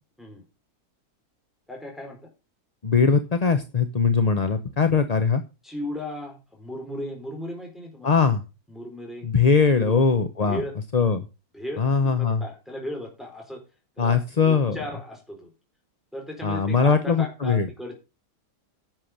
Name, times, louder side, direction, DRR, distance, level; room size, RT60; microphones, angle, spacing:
voice 1, 1.7-2.3 5.6-8.1 8.7-9.3 9.7-10.0 10.4-10.8 11.5-13.6 14.0-15.5 16.1-18.0, left 1 dB, ahead, 0 dB, 4.4 m, -36 dB
voice 2, 2.8-5.4 8.0-8.4 9.2-10.6 10.9-11.3 11.8-12.4 14.0-14.8 16.4-17.7, left 5 dB, 35° left, 9 dB, 0.7 m, -21 dB
10.5 x 7.5 x 6.5 m, 0.29 s
omnidirectional pair, 1.8 m